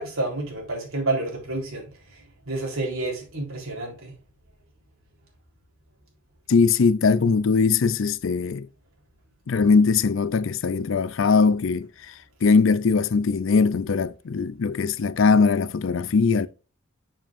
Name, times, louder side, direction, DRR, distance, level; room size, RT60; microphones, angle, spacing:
voice 1, 0.0-4.1, right 2 dB, 85° right, 3.8 m, -30 dB
voice 2, 6.5-8.7 9.5-12.1 12.4-16.5, left 5 dB, 65° left, 0.5 m, -21 dB
7.5 x 7.3 x 2.6 m
head